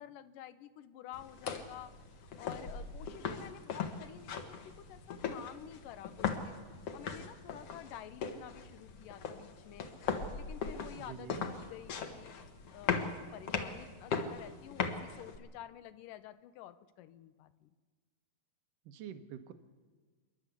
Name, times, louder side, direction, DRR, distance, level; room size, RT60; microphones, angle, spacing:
voice 1, 0.0-6.6 6.9-9.9 10.3-12.4 12.7-17.7, left 11 dB, 80° left, 13 dB, 2.4 m, -50 dB
sound 1, 1.1-15.4, left 6 dB, 55° left, 2.2 m, -39 dB
voice 2, 11.0-11.4 18.9-19.5, right 9 dB, 80° right, 9 dB, 2.7 m, -46 dB
28.0 x 11.5 x 8.2 m, 1.4 s
omnidirectional pair, 3.9 m